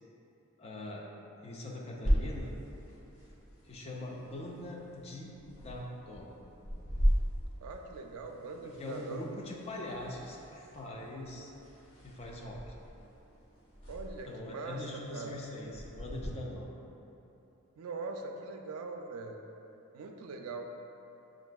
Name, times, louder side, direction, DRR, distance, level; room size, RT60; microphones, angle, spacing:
voice 1, 0.6-1.0 1.4-2.5 3.6-6.3 8.6-11.5 12.0-12.7 14.3-16.7, left 1 dB, 30° left, -2 dB, 0.4 m, -42 dB
sound 1, 2.0-16.3, equal, 65° left, 0.8 m, -37 dB
voice 2, 7.6-9.2 13.9-14.8 15.1-15.3 17.8-19.4 19.9-20.7, right 3 dB, 75° right, 3 dB, 0.3 m, -41 dB
6.2 x 2.5 x 2.2 m, 3.0 s
head